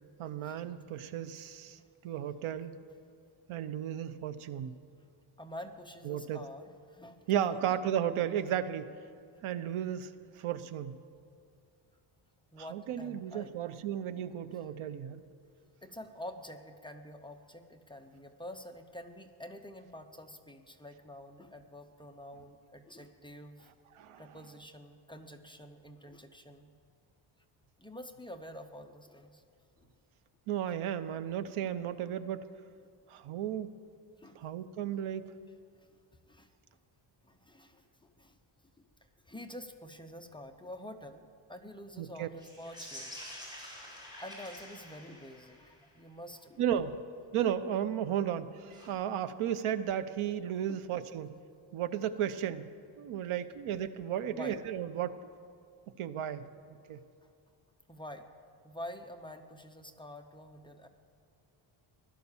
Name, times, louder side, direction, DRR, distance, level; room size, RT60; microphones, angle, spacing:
voice 1, 0.2-1.8 2.0-2.8 3.5-4.7 6.0-6.4 7.3-8.9 9.4-11.0 12.6-15.2 23.9-24.2 30.5-32.5 33.1-33.7 34.3-35.3 42.0-42.3 46.6-47.0 47.3-51.3 51.7-52.7 53.0-55.3 56.0-57.0, right 10 dB, 80° right, 12 dB, 0.9 m, -34 dB
voice 2, 5.4-7.8 12.5-13.6 15.8-23.7 24.2-26.7 27.8-29.4 29.8-29.9 34.2-34.4 36.3-36.5 37.2-38.4 39.2-43.6 44.2-47.0 50.7-50.8 54.3-54.6 57.9-58.3 58.6-60.9, left 1 dB, 10° left, 5 dB, 0.6 m, -47 dB
sound 1, 42.3-45.9 48.7-48.9, left 1 dB, 10° right, 3.9 m, -48 dB
16.5 x 12.0 x 7.2 m, 2.4 s
wide cardioid pair, 170°, 49 cm